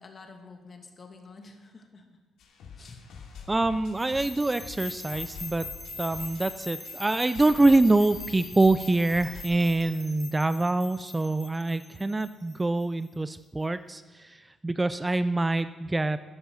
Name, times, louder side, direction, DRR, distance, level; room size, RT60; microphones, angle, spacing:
voice 1, 0.0-2.2 2.8-3.0 3.7-3.8 12.6-12.7, left 4 dB, 40° left, 4 dB, 2.3 m, -49 dB
sound 1, 2.4-9.4, left 5 dB, 80° left, 2.7 m, -47 dB
voice 2, 3.5-5.7 6.0-16.2, right 2 dB, 15° right, 13 dB, 0.4 m, -25 dB
sound 2, 4.0-13.0, left 3 dB, 15° left, 3.4 m, -42 dB
13.5 x 10.0 x 7.0 m, 1.3 s
cardioid pair, 90°, 0 cm